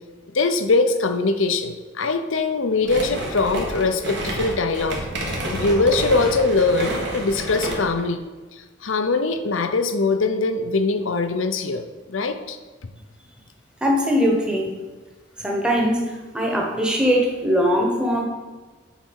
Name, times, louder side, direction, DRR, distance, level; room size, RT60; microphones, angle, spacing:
voice 1, 0.3-5.0 5.2-8.2 8.5-11.8 12.1-12.6, left 3 dB, 75° left, 8 dB, 0.7 m, -22 dB
sound 1, 2.8-8.0, equal, 60° right, 1.7 m, -29 dB
voice 2, 13.8-14.7 15.4-16.0 16.3-18.2, equal, 5° right, -1 dB, 1.2 m, -20 dB
8.0 x 4.2 x 6.3 m, 1.3 s
head